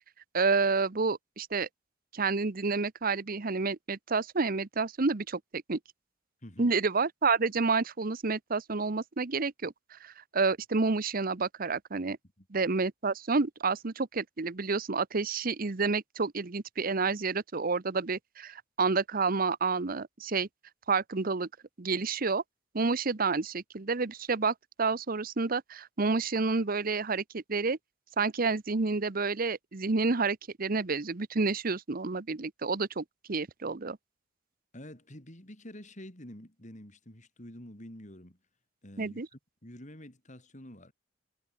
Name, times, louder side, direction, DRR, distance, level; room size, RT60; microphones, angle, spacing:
voice 1, 0.3-1.7 2.1-5.8 6.6-12.2 12.5-20.5 20.9-21.5 21.8-22.4 22.7-27.8 28.2-34.0 39.0-39.3, right 4 dB, 50° right, 0.9 m, -29 dB
voice 2, 6.4-6.8 12.4-12.5 34.7-38.4 38.8-40.9, left 1 dB, 40° left, 5.1 m, -48 dB
head